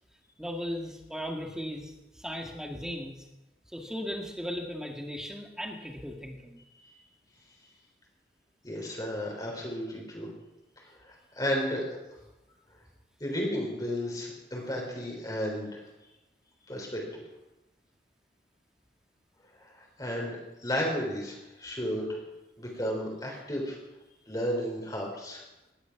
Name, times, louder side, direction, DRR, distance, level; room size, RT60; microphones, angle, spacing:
voice 1, 0.4-3.3 3.7-6.6, equal, 5° right, 2 dB, 2.1 m, -37 dB
voice 2, 8.6-10.3 10.8-11.9 13.2-15.8 16.7-17.2 19.6-22.2 22.6-23.8 24.3-25.4, equal, 20° left, -1 dB, 3.8 m, -33 dB
18.5 x 11.5 x 6.0 m, 1.0 s
head